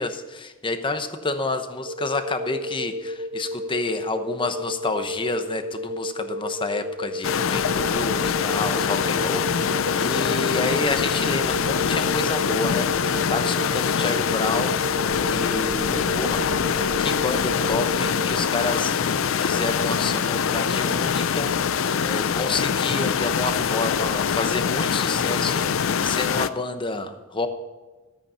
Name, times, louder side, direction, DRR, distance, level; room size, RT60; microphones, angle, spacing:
voice 1, 0.0-16.5 17.0-25.7 26.0-27.5, left 3 dB, 25° left, 8 dB, 0.9 m, -29 dB
sound 1, 1.8-18.3, left 1 dB, 55° right, 1.0 m, -32 dB
sound 2, 7.2-26.5, left 7 dB, 80° left, 0.5 m, -24 dB
13.0 x 8.5 x 5.5 m, 1.2 s
head